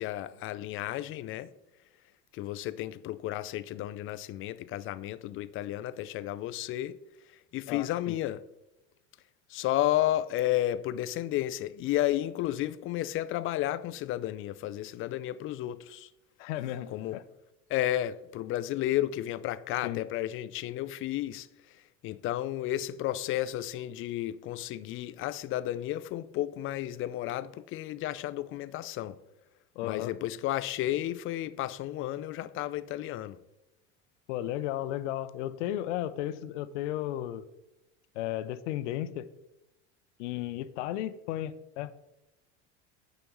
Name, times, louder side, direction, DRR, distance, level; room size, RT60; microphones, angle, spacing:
voice 1, 0.0-1.5 2.3-7.0 7.5-8.4 9.5-16.1 16.9-17.2 17.7-21.5 22.0-29.2 29.8-33.4, left 13 dB, 35° left, 0.4 m, -32 dB
voice 2, 7.7-8.2 16.4-17.2 19.8-20.0 29.8-30.2 34.3-37.5 38.2-39.3 40.2-41.9, left 13 dB, 75° left, 0.6 m, -34 dB
9.2 x 6.8 x 3.0 m
hypercardioid pair, 95°, 36 cm